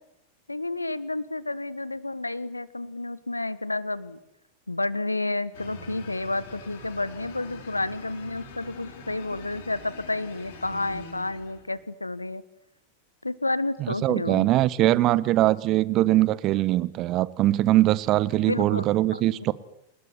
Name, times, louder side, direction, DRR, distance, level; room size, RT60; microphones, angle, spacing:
voice 1, 0.5-4.2 4.7-12.4 13.2-14.5 18.5-18.9, left 2 dB, 85° left, 1.5 m, -30 dB
sound 1, 5.5-11.8, left 3 dB, 55° left, 7.7 m, -44 dB
voice 2, 13.8-19.5, right 15 dB, 35° right, 1.3 m, -22 dB
29.0 x 19.5 x 9.9 m
figure-of-eight pair, 90°, 0 cm